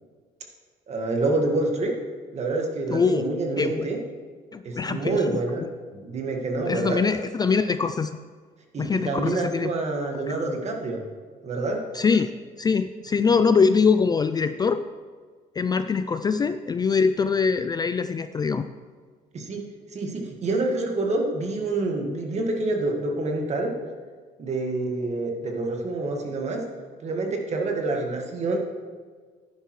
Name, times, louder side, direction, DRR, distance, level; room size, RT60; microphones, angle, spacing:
voice 1, 0.9-1.9 2.3-4.0 4.6-7.0 8.7-11.0 11.4-11.8 19.3-19.6 19.9-23.7 24.4-26.6 27.0-28.6, right 2 dB, 40° right, 2 dB, 1.8 m, -27 dB
voice 2, 2.9-3.3 3.6-3.9 4.5-5.7 6.7-8.1 8.8-9.7 10.3-10.4 11.9-12.3 12.6-14.9 15.6-18.7, left 5 dB, 25° left, 10 dB, 0.3 m, -23 dB
11.0 x 10.0 x 3.2 m, 1.5 s
cardioid pair, 110°, 17 cm